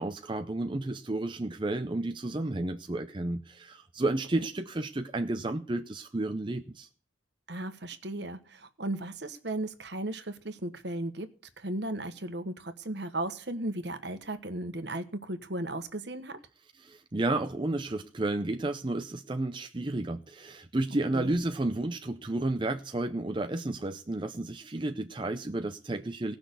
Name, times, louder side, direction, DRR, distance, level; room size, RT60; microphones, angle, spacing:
voice 1, 0.0-6.9 16.8-26.4, right 2 dB, 25° right, 0.6 m, -32 dB
voice 2, 7.5-11.3 11.6-16.4 21.1-21.3, right 1 dB, 55° right, 1.4 m, -36 dB
18.0 x 6.1 x 8.2 m
head